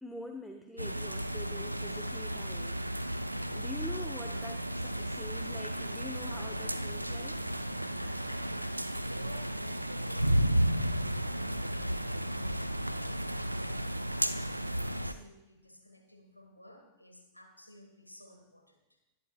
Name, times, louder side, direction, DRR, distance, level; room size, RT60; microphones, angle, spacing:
voice 1, 0.0-2.8 3.5-7.4, left 2 dB, 5° left, 4 dB, 1.0 m, -45 dB
sound 1, 0.8-15.1, right 1 dB, 85° right, 0.5 m, -33 dB
voice 2, 8.0-8.8 9.1-13.9 14.3-19.0, left 1 dB, 90° left, 3 dB, 1.6 m, -54 dB
20.0 x 11.5 x 2.4 m, 0.99 s
figure-of-eight pair, 90°, 0 cm